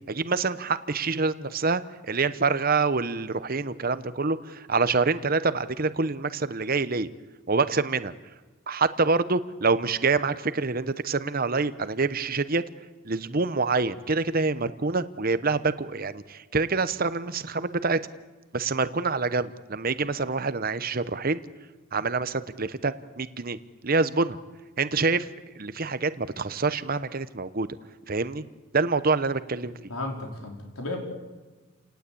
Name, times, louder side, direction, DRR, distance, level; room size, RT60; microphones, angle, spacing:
voice 1, 0.1-1.8 2.1-7.1 7.5-8.1 8.7-12.6 13.0-18.0 18.5-21.4 21.9-23.6 23.8-24.4 24.8-25.3 25.6-27.7 28.1-28.4 28.7-29.9, right 4 dB, 45° right, 13 dB, 0.9 m, -26 dB
voice 2, 29.9-31.0, left 2 dB, 90° left, 1 dB, 4.5 m, -33 dB
30.0 x 18.5 x 8.6 m, 1.3 s
head